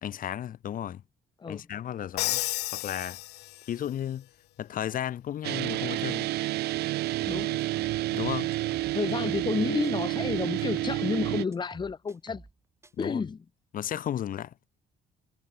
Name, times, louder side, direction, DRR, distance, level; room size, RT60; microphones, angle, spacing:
voice 1, 0.0-1.0 1.5-2.4 2.7-3.2 3.7-4.3 4.6-6.3 8.1-8.5 13.0-13.2 13.7-14.5, left 10 dB, 55° left, 2.1 m, -34 dB
Crash cymbal, 2.2-3.9, left 18 dB, 80° left, 0.8 m, -32 dB
sound 1, 5.4-11.5, right 17 dB, 75° right, 0.8 m, -29 dB
sound 2, 7.2-9.6 9.8-12.6 12.8-13.1, right 3 dB, 15° right, 7.6 m, -51 dB
voice 2, 7.3-7.7 8.9-12.4 13.0-13.4, left 5 dB, 25° left, 1.6 m, -31 dB
cardioid pair, 110°, 17 cm